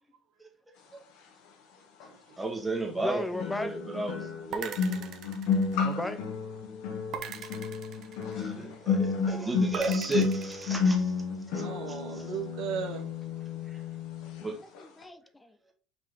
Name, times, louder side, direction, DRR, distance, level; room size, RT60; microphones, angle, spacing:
sound 1, 2.0-2.1 3.4-14.5 14.7-15.0, left 5 dB, 80° left, 1.7 m, -31 dB
voice 1, 2.4-5.0 8.4-11.1 11.5-11.6 11.9-12.2 13.7-13.8 14.4-14.5, right 2 dB, 10° right, 1.4 m, -34 dB
voice 2, 3.0-3.8 5.8-6.2 9.3-9.5 14.8-15.6, left 1 dB, 10° left, 0.5 m, -36 dB
sound 2, 4.5-6.2 7.1-8.7 9.7-10.7, right 8 dB, 45° right, 0.9 m, -40 dB
voice 3, 11.5-13.4, right 7 dB, 75° right, 1.4 m, -37 dB
5.8 x 4.8 x 3.5 m
cardioid pair, 165°, 0 cm